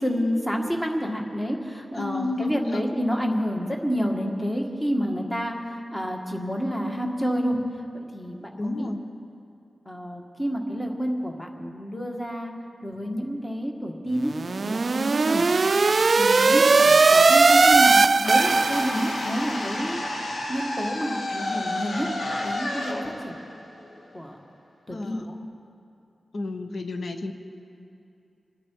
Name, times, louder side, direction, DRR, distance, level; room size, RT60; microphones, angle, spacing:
voice 1, 0.0-5.5 5.9-7.6 8.1-8.9 9.8-12.5 12.8-14.3 14.6-15.5 16.1-20.0 20.5-22.1 22.4-22.9 23.2-23.4 24.1-24.4 24.9-25.3, equal, 10° left, 1 dB, 1.7 m, -29 dB
voice 2, 1.9-2.8 8.6-9.0 15.2-15.5 24.9-25.3 26.3-27.3, left 2 dB, 60° left, 6 dB, 1.1 m, -31 dB
sound 1, 14.3-19.3, right 4 dB, 45° right, 0.4 m, -18 dB
sound 2, 18.2-24.3, left 1 dB, 90° left, 2.3 m, -31 dB
26.0 x 10.5 x 4.7 m, 2.6 s
wide cardioid pair, 130°, 0 cm